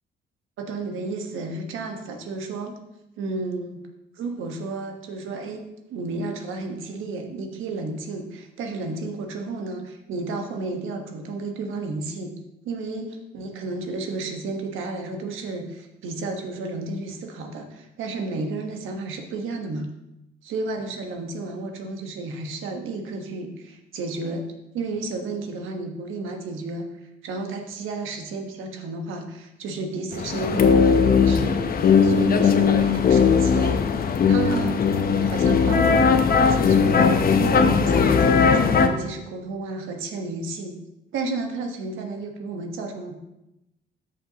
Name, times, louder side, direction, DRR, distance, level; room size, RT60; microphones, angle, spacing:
voice 1, 0.6-2.7 3.2-3.8 4.2-5.6 5.9-12.3 12.6-19.9 20.5-24.4 24.7-26.9 27.2-33.8 34.3-34.8 35.2-37.1 37.4-40.8 41.1-43.2, right 3 dB, 85° right, 4 dB, 1.3 m, -32 dB
sound 1, 30.1-38.9, left 5 dB, 50° left, 0.8 m, -18 dB
13.5 x 5.4 x 2.9 m, 0.90 s
cardioid pair, 90°, 20 cm